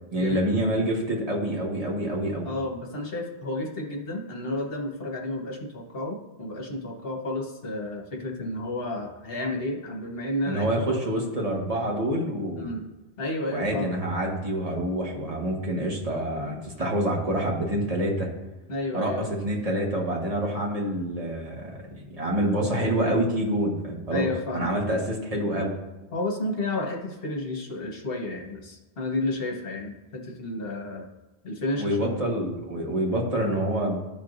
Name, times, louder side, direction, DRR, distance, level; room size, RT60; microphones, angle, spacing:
voice 1, 0.1-2.5 10.4-12.7 13.5-18.3 18.9-24.3 24.5-25.7 31.8-34.0, right 1 dB, 35° right, -2 dB, 1.4 m, -27 dB
voice 2, 2.4-11.0 12.5-12.8 13.2-13.9 18.7-19.2 24.1-24.8 26.1-31.0 31.4-32.1, left 2 dB, 65° left, 1 dB, 1.3 m, -31 dB
12.5 x 4.6 x 2.5 m, 1.1 s
omnidirectional pair, 1.1 m